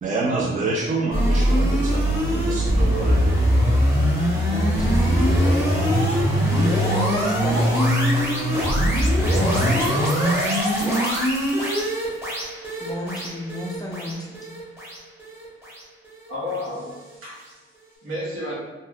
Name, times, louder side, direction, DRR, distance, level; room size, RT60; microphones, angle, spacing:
voice 1, 0.0-3.4, right 3 dB, 35° right, -3 dB, 0.5 m, -27 dB
sound 1, 1.1-16.3, equal, 10° right, 0.9 m, -21 dB
voice 2, 4.5-6.0 6.9-8.0 9.2-9.9 12.8-14.5, left 1 dB, 20° left, -2 dB, 0.4 m, -31 dB
voice 3, 16.3-18.5, left 1 dB, 80° right, -7 dB, 1.3 m, -32 dB
2.7 x 2.2 x 3.4 m, 1.1 s
cardioid pair, 115°, 21 cm